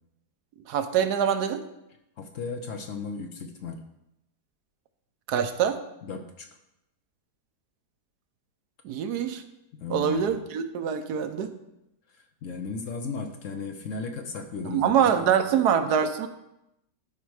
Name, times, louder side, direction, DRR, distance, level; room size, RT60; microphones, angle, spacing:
voice 1, 0.7-1.6 5.3-5.8 8.8-9.4 9.9-11.5 14.6-16.3, right 8 dB, 75° right, 9 dB, 1.2 m, -24 dB
voice 2, 2.2-3.8 6.0-6.5 9.8-10.5 12.1-15.3, left 4 dB, 60° left, 5 dB, 1.0 m, -36 dB
12.0 x 4.6 x 4.8 m, 0.86 s
omnidirectional pair, 1.8 m